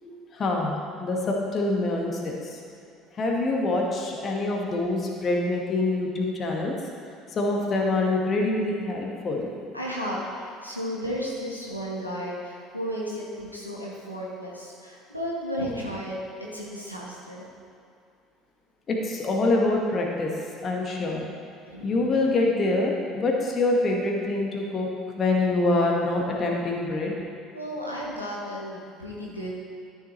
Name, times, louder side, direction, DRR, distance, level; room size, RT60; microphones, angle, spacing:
voice 1, 0.0-2.6 3.1-6.7 7.3-9.5 18.9-20.3 20.6-21.2 21.8-24.9 25.2-27.1, left 2 dB, 35° left, 0 dB, 1.4 m, -25 dB
voice 2, 9.7-17.5 21.7-22.1 27.5-29.5, equal, 90° left, -5 dB, 1.2 m, -34 dB
13.5 x 6.9 x 3.1 m, 2.5 s
figure-of-eight pair, 60°, 0 cm